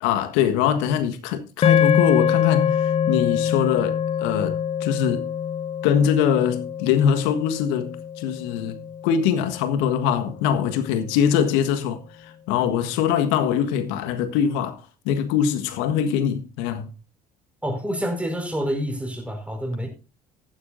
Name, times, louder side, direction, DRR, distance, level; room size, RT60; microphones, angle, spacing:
voice 1, 0.0-5.3 5.8-8.8 9.0-14.8 15.0-16.9, left 8 dB, 65° left, 1.5 m, -23 dB
sound 1, 1.6-10.0, left 8 dB, 30° left, 0.5 m, -24 dB
voice 2, 17.6-19.9, equal, 5° right, 5.1 m, -27 dB
15.0 x 12.0 x 2.6 m
hypercardioid pair, 60°, 20 cm